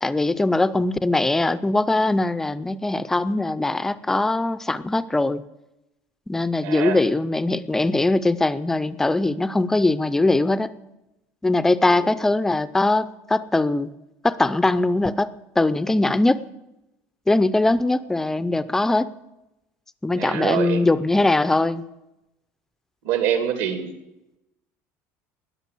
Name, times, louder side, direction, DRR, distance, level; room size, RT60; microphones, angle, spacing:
voice 1, 0.0-5.4 6.3-10.7 11.4-13.9 14.2-16.4 17.3-19.1 20.0-21.8, left 2 dB, 5° left, 14 dB, 0.5 m, -21 dB
voice 2, 6.6-7.1 11.8-12.1 20.2-20.8 23.0-23.9, right 9 dB, 75° right, 7 dB, 2.5 m, -25 dB
20.0 x 6.8 x 8.3 m, 0.93 s
cardioid pair, 175°, 6 cm